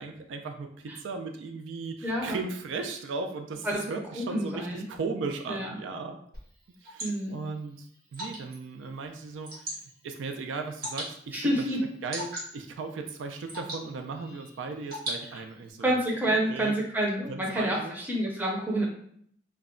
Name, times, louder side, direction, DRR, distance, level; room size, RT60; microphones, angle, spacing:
voice 1, 0.0-6.2 6.8-16.0 16.2-16.8 17.2-18.0, right 4 dB, 85° right, 6 dB, 0.3 m, -37 dB
voice 2, 2.0-2.4 3.6-3.8 4.3-4.8 5.5-5.7 7.0-7.3 11.3-11.8 15.8-18.9, right 1 dB, 10° right, -3 dB, 0.5 m, -28 dB
Water / Drip, 6.3-15.7, right 1 dB, 55° right, 1.0 m, -42 dB
2.2 x 2.0 x 3.6 m, 0.65 s
head